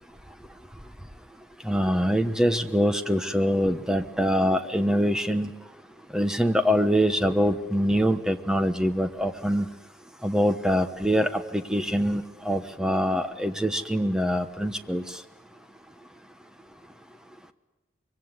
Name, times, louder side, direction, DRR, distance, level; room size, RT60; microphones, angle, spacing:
voice 1, 1.6-5.5 6.1-9.7 10.2-15.0, equal, 5° right, 9 dB, 1.1 m, -24 dB
24.5 x 23.5 x 9.6 m, 1.1 s
head